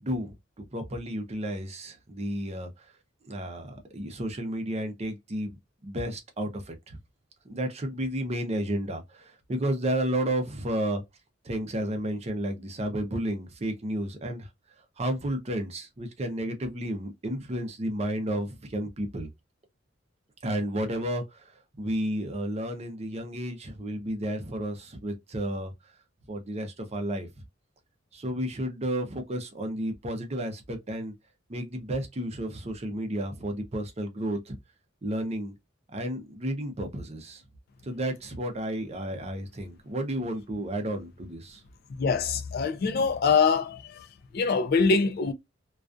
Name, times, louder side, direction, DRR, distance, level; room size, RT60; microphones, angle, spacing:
voice 1, 0.0-2.8 3.3-7.0 7.5-11.0 11.4-14.5 15.0-19.3 20.4-21.5 21.8-25.7 26.3-27.3 28.1-31.1 31.5-34.5 35.0-35.5 35.9-37.4 37.8-41.6, right 1 dB, 35° right, 0.6 m, -32 dB
voice 2, 42.0-43.8 44.3-45.3, left 5 dB, 50° left, 0.4 m, -23 dB
2.3 x 2.3 x 2.4 m
head